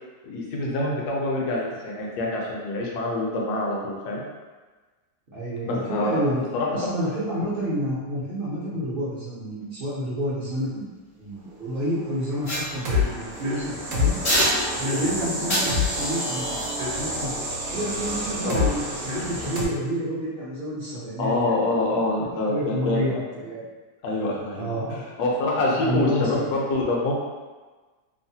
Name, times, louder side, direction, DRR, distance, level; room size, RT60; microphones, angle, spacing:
voice 1, 0.2-4.2 5.6-6.2 6.5-6.7 18.4-18.6 21.2-23.1 24.0-27.1, left 2 dB, 75° left, -3 dB, 1.1 m, -26 dB
voice 2, 5.3-6.4 6.7-10.9 11.2-14.1 14.7-17.4 17.7-23.6 24.6-25.0 25.7-26.5, equal, 55° right, -10 dB, 0.6 m, -29 dB
sound 1, 12.3-19.7, left 2 dB, 70° right, 1.1 m, -28 dB
sound 2, 12.4-13.4 14.2-15.1 15.5-18.7 19.3-19.5, equal, 40° left, 0.5 m, -29 dB
3.1 x 2.0 x 2.7 m, 1.3 s
omnidirectional pair, 1.8 m